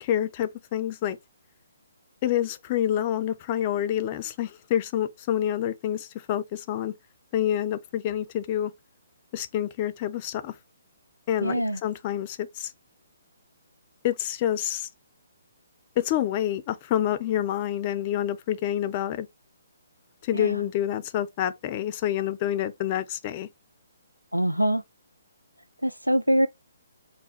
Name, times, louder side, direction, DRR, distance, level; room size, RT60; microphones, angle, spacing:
voice 1, 0.0-1.2 2.2-6.9 7.3-8.7 9.3-10.5 11.3-12.7 14.0-14.9 16.0-19.3 20.2-23.5, left 11 dB, 30° left, 0.5 m, -27 dB
voice 2, 11.4-11.8 20.3-20.6 24.3-24.8 25.8-26.5, equal, 90° right, 0.4 m, -24 dB
3.4 x 2.2 x 4.3 m
figure-of-eight pair, 135°, 0 cm